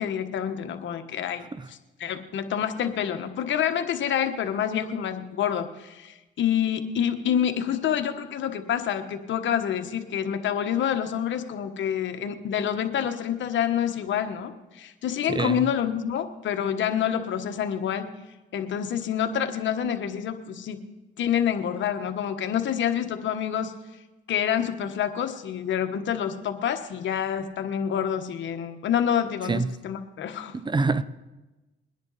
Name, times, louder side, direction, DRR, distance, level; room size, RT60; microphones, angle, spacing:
voice 1, 0.0-18.1 18.5-20.8 21.2-23.7 24.3-30.6, left 9 dB, 70° left, 1.2 m, -27 dB
voice 2, 30.6-31.0, right 3 dB, 25° right, 0.6 m, -25 dB
21.5 x 10.0 x 4.1 m
cardioid pair, 90°, 20 cm